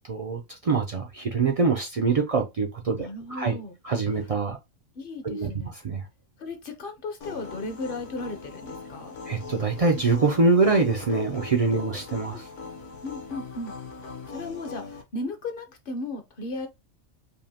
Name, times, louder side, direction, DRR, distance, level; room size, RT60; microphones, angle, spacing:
voice 1, 0.1-3.6 3.8-4.6 5.2-5.5 5.8-6.0 9.3-12.5, right 4 dB, 65° right, 0.3 m, -24 dB
voice 2, 3.0-3.8 5.0-5.7 6.4-9.1 11.8-12.4 13.0-13.7 14.3-16.7, left 2 dB, 50° left, 0.8 m, -36 dB
sound 1, 7.2-15.0, left 4 dB, 65° left, 1.2 m, -41 dB
5.3 x 2.1 x 2.7 m
omnidirectional pair, 1.3 m